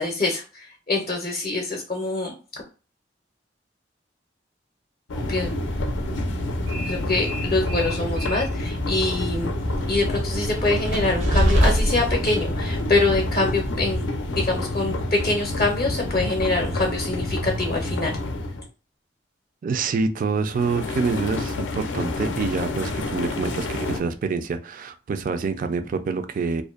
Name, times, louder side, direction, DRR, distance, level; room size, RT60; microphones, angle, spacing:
voice 1, 0.0-2.6 5.3-5.5 6.9-9.5 9.9-14.0 14.3-18.1, left 2 dB, 40° left, 0 dB, 0.5 m, -25 dB
sound 1, 5.1-18.7 20.5-24.0, left 2 dB, 90° left, 0.4 m, -29 dB
Train, 5.6-14.0, equal, 85° right, 0.7 m, -27 dB
voice 2, 19.6-26.6, right 4 dB, 45° right, 8 dB, 0.3 m, -26 dB
2.5 x 2.1 x 2.3 m, 0.34 s
head